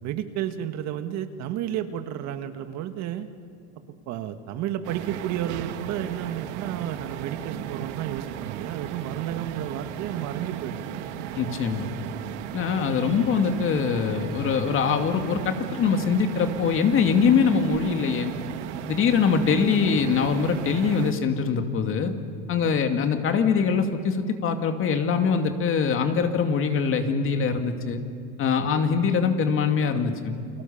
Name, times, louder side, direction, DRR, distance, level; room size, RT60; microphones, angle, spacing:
voice 1, 0.0-3.3 4.1-10.9 13.1-13.3 19.0-19.3 22.6-22.7 28.6-28.8, right 11 dB, 55° right, 8 dB, 1.8 m, -32 dB
sound 1, 4.8-21.1, right 10 dB, 85° right, 1.6 m, -36 dB
voice 2, 11.4-11.9 12.5-18.3 18.9-22.1 22.5-28.0 28.4-30.3, left 6 dB, 40° left, 6 dB, 2.4 m, -23 dB
29.5 x 23.5 x 7.2 m, 2.5 s
supercardioid pair, 125°, 34 cm